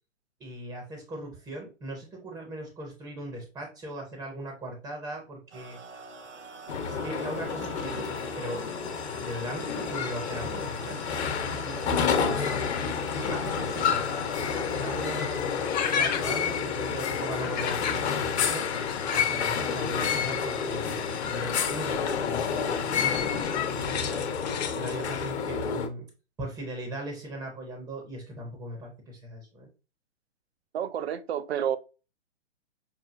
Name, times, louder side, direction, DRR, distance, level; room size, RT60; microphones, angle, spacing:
voice 1, 0.4-5.8 6.8-8.6 9.2-11.0 11.5-12.6 12.9-15.4 15.9-18.7 19.1-24.2 24.8-26.1 26.4-29.7, right 1 dB, 5° right, 0.4 m, -39 dB
sound 1, 5.5-15.2, right 5 dB, 85° right, 1.0 m, -45 dB
sound 2, 6.7-25.9, left 6 dB, 65° left, 1.0 m, -29 dB
sound 3, 9.4-25.3, left 8 dB, 40° left, 0.6 m, -38 dB
voice 2, 30.7-31.8, right 9 dB, 65° right, 0.6 m, -29 dB
5.6 x 2.2 x 2.5 m
hypercardioid pair, 135°, 35 cm